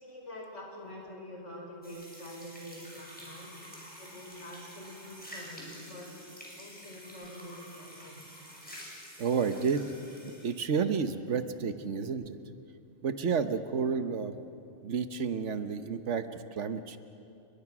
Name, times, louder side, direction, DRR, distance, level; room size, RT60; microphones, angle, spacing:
voice 1, 0.0-3.5 4.0-6.1 6.5-8.3, left 1 dB, 90° left, -1 dB, 5.5 m, -46 dB
sound 1, 1.8-10.6, equal, 5° left, 6.2 m, -48 dB
voice 2, 9.2-9.8 10.4-12.4 13.0-14.3 14.8-16.3 16.5-17.0, right 6 dB, 80° right, 9 dB, 1.4 m, -30 dB
29.5 x 22.5 x 6.1 m, 2.8 s
omnidirectional pair, 1.2 m